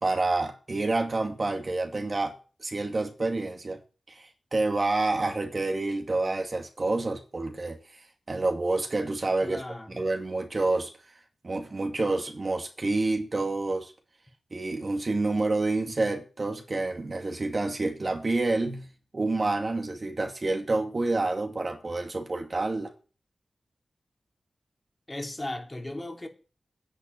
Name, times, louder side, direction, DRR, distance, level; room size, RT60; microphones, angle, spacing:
voice 1, 0.0-3.8 4.1-7.8 8.3-9.6 9.9-10.9 11.4-13.9 14.5-18.9 19.1-22.9, right 2 dB, 50° right, 2.5 m, -28 dB
voice 2, 9.4-10.0 25.1-26.3, left 1 dB, 25° left, 3.2 m, -36 dB
10.0 x 8.5 x 8.0 m
cardioid pair, 45°, 0 cm